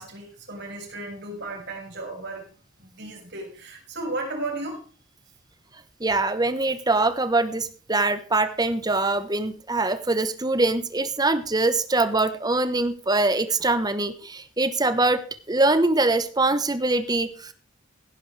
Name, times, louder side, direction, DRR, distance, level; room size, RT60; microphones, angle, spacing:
voice 1, 0.0-2.5 2.8-4.8, right 2 dB, 55° right, 1 dB, 6.1 m, -34 dB
voice 2, 6.0-17.5, right 2 dB, 20° right, 12 dB, 1.2 m, -23 dB
17.0 x 10.5 x 3.4 m, 0.38 s
head